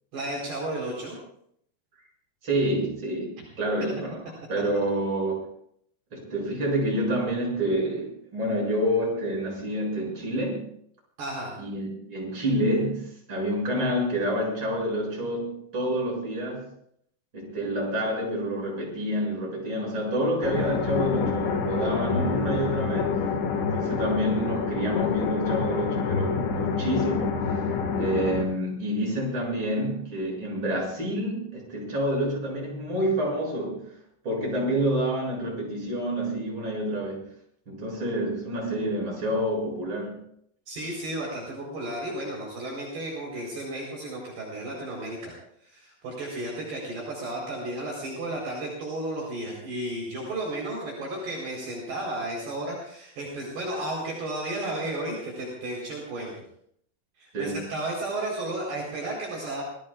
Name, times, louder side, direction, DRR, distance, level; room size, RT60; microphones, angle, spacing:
voice 1, 0.1-1.2 11.2-11.6 40.7-45.3 45.6-56.3 57.2-59.6, right 1 dB, 55° right, -3 dB, 6.1 m, -33 dB
voice 2, 2.4-4.2 4.5-5.4 6.1-10.7 11.6-16.7 17.3-23.2 23.6-27.6 28.0-33.9 34.2-37.2 37.7-40.2 57.3-57.7, equal, 25° right, -3 dB, 8.2 m, -28 dB
sound 1, 20.4-28.4, left 5 dB, 70° left, 4.1 m, -27 dB
28.0 x 19.0 x 2.5 m, 0.69 s
omnidirectional pair, 5.7 m